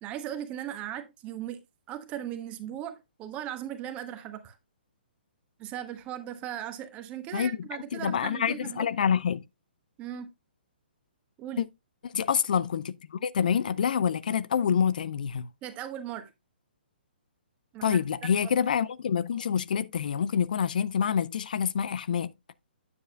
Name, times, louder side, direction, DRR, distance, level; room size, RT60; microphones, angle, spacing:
voice 1, 0.0-1.6 1.9-4.6 5.6-8.9 10.0-10.3 11.4-11.6 15.6-16.3 17.7-18.0 18.3-18.5, right 11 dB, 25° right, 1.2 m, -38 dB
voice 2, 7.9-9.4 11.6-11.7 12.0-15.5 17.8-22.3, left 7 dB, 55° left, 0.5 m, -27 dB
9.5 x 7.5 x 2.2 m
figure-of-eight pair, 125°, 6 cm